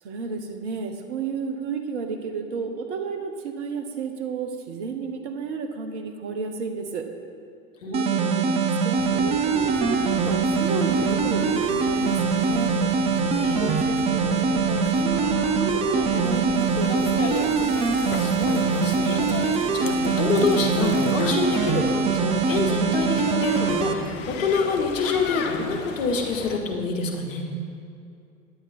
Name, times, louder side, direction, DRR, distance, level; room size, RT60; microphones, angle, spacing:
voice 1, 0.0-7.1 7.9-12.7 13.6-17.6, right 5 dB, 55° right, 5 dB, 1.0 m, -32 dB
voice 2, 7.8-8.5 13.3-13.8 18.2-27.5, left 4 dB, 65° left, 2 dB, 1.5 m, -27 dB
sound 1, 7.9-23.9, right 5 dB, 15° right, 0.4 m, -23 dB
sound 2, 9.0-26.6, left 6 dB, 35° left, 0.8 m, -34 dB
10.0 x 8.6 x 4.3 m, 2.5 s
figure-of-eight pair, 80°, 41 cm